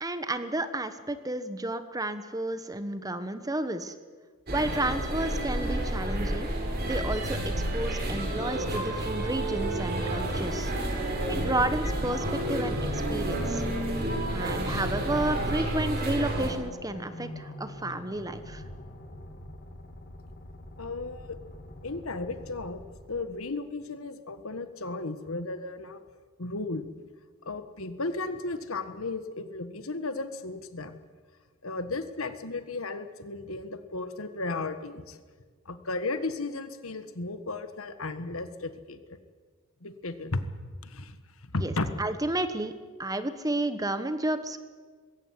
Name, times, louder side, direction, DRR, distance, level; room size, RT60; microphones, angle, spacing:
voice 1, 0.0-3.9 4.5-6.5 6.8-10.7 11.3-13.6 14.3-18.6 41.6-41.7 42.0-42.7 43.0-44.6, right 1 dB, 15° right, 11 dB, 1.2 m, -31 dB
sound 1, 4.5-16.5, right 1 dB, 45° right, 4.3 m, -30 dB
sound 2, 5.4-23.4, left 1 dB, 45° left, 3.0 m, -45 dB
voice 2, 20.8-21.4 21.8-22.8 23.1-26.0 26.4-26.9 27.4-31.0 31.6-35.2 35.6-39.2 39.8-41.9, left 3 dB, 70° left, 10 dB, 1.5 m, -35 dB
21.0 x 16.5 x 9.8 m, 1.5 s
head